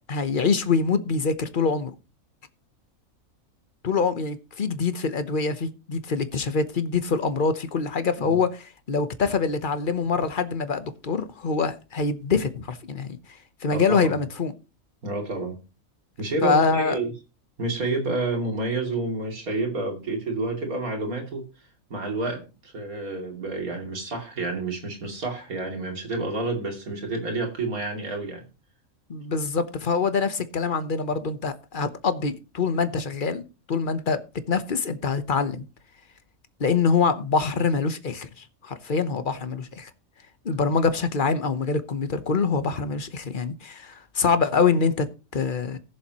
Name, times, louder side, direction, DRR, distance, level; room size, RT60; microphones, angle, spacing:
voice 1, 0.1-1.9 3.8-13.2 13.6-14.5 16.4-17.0 29.1-34.2 34.5-35.7 36.6-39.9 40.4-45.8, left 5 dB, 40° left, 1.0 m, -25 dB
voice 2, 13.7-14.2 15.0-15.6 16.2-17.1 17.6-21.5 21.9-28.4, right 2 dB, 80° right, 3.2 m, -29 dB
19.5 x 7.1 x 3.0 m
omnidirectional pair, 1.5 m